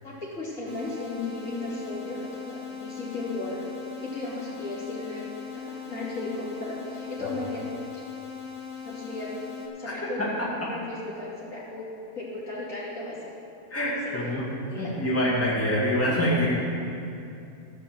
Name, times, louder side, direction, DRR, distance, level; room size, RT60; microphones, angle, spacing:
voice 1, 0.0-3.6 4.0-5.3 5.7-7.6 7.9-8.0 8.8-9.3 9.8-10.2 10.7-11.9 12.1-13.2 14.0-14.4 14.7-15.2, left 2 dB, 55° left, -7 dB, 3.1 m, -35 dB
sound 1, 0.7-9.7, left 6 dB, 50° right, 1.8 m, -40 dB
voice 2, 10.0-10.7 13.7-14.4 14.8-16.6, equal, 10° left, -7 dB, 2.1 m, -26 dB
15.0 x 6.4 x 7.4 m, 2.7 s
omnidirectional pair, 1.6 m